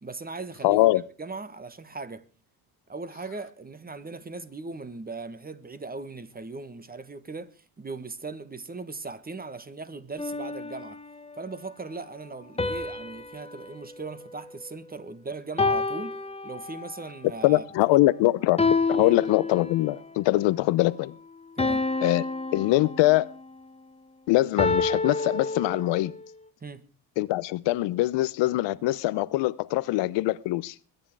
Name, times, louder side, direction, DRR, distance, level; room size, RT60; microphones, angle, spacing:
voice 1, 0.0-0.9 1.2-2.2 2.9-11.0 11.4-18.0 19.0-19.2 21.5-21.9 26.6-26.8, right 3 dB, 20° right, 1.6 m, -39 dB
voice 2, 0.6-1.0 17.4-18.6 18.9-21.1 22.0-22.2 22.5-23.3 24.3-26.1 27.2-30.7, left 17 dB, 85° left, 0.9 m, -23 dB
sound 1, 10.2-11.4 12.6-15.0 15.6-17.1 18.6-20.1 21.6-23.5 24.6-26.2, left 3 dB, 15° left, 1.2 m, -29 dB
22.0 x 10.0 x 4.7 m
cardioid pair, 95°, 42 cm